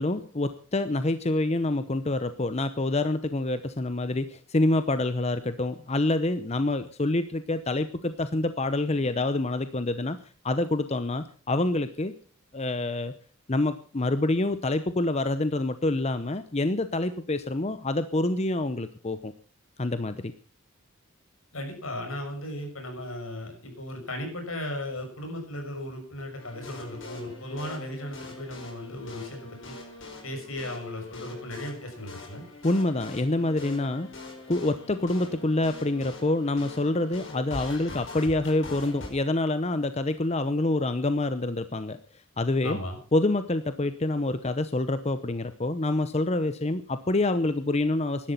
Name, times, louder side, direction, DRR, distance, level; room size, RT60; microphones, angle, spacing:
voice 1, 0.0-10.2 10.4-12.1 12.5-13.1 13.5-19.3 19.8-20.3 32.6-34.1 34.5-42.0 42.4-42.8 43.1-48.3, left 2 dB, 30° left, 11 dB, 0.8 m, -27 dB
voice 2, 21.5-29.7 30.2-32.4 42.6-43.0, left 1 dB, 80° left, 4 dB, 6.3 m, -36 dB
sound 1, 26.4-39.1, left 3 dB, 60° left, 5.0 m, -43 dB
17.0 x 12.0 x 5.8 m, 0.41 s
head